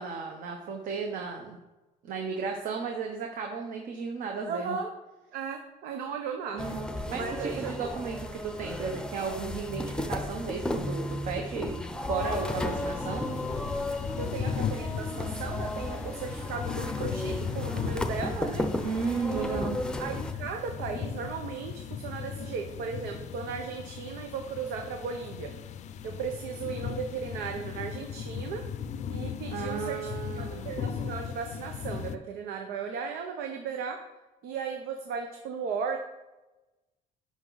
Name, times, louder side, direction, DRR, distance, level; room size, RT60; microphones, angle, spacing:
voice 1, 0.0-1.6 2.0-4.8 6.5-13.3 18.8-19.8 29.5-30.7, right 5 dB, 60° right, 2 dB, 1.1 m, -34 dB
voice 2, 4.5-4.9 5.3-6.6 7.1-7.9 14.2-18.7 19.3-25.5 26.0-28.6 29.1-30.1 30.3-34.0 34.4-36.0, right 5 dB, 90° right, 4 dB, 1.0 m, -36 dB
sound 1, 6.6-20.3, left 1 dB, 5° left, 0.6 m, -34 dB
sound 2, 12.2-32.2, left 7 dB, 50° left, 0.5 m, -37 dB
11.0 x 5.8 x 4.0 m, 1.1 s
cardioid pair, 145°, 16 cm